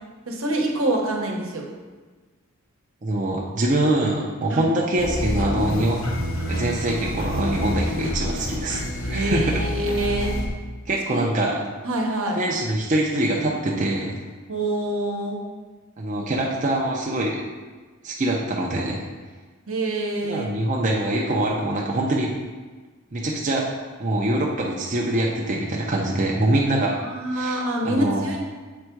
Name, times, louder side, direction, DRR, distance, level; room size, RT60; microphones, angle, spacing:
voice 1, 0.3-1.7 4.5-4.7 9.1-10.4 11.1-11.3 11.8-12.4 14.5-15.4 19.7-20.7 27.0-28.4, right 1 dB, 75° right, 0 dB, 1.1 m, -26 dB
voice 2, 3.0-6.0 6.5-8.8 9.1-9.5 10.9-11.6 12.4-14.2 16.0-17.4 18.0-19.0 20.2-22.3 23.1-23.6 24.0-27.0 27.3-28.2, right 1 dB, 35° right, -3 dB, 0.6 m, -24 dB
sound 1, 5.0-10.5, left 1 dB, 70° left, 1.0 m, -28 dB
7.7 x 3.5 x 4.6 m, 1.4 s
head